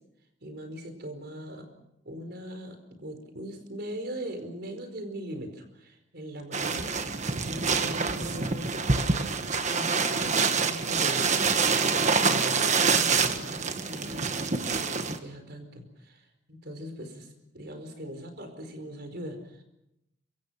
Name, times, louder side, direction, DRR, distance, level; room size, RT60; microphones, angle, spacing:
voice 1, 0.4-1.7 2.0-11.5 11.8-19.6, equal, 50° right, 7 dB, 4.9 m, -41 dB
sound 1, 6.5-15.2, right 5 dB, 35° right, 1.5 m, -26 dB
27.0 x 24.5 x 5.9 m, 0.81 s
head